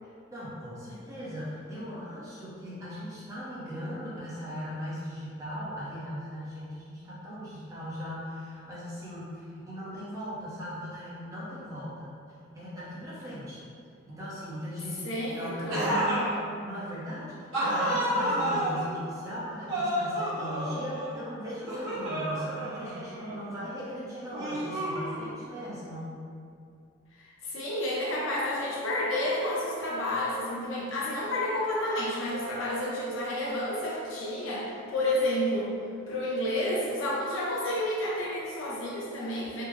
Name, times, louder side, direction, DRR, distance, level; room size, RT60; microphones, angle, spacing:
voice 1, 0.0-12.2 12.5-13.6 14.1-16.1 16.6-26.2, equal, 15° right, -9 dB, 0.7 m, -39 dB
voice 2, 15.0-16.3 18.2-18.6 27.1-35.7 36.1-39.6, left 1 dB, 70° left, -5 dB, 0.7 m, -30 dB
sound 1, 15.7-16.3 17.5-18.9 19.7-21.2 21.7-23.4 24.3-25.4, right 1 dB, 75° right, 1.1 m, -30 dB
3.5 x 2.0 x 3.1 m, 2.4 s
head